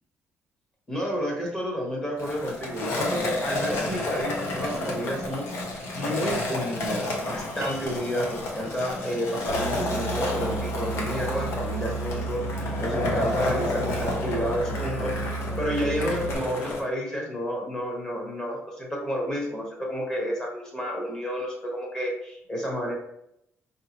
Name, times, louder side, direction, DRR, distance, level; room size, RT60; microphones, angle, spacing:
voice 1, 0.9-5.5 6.0-22.9, equal, 15° left, -1 dB, 0.9 m, -30 dB
Skateboard, 2.2-16.8, left 2 dB, 65° left, 0.9 m, -31 dB
sound 1, 7.6-12.3, right 3 dB, 45° right, 0.5 m, -46 dB
Musical instrument, 9.5-16.3, right 3 dB, 45° left, 1.3 m, -33 dB
4.7 x 2.7 x 2.8 m, 0.77 s
cardioid pair, 160°, 5 cm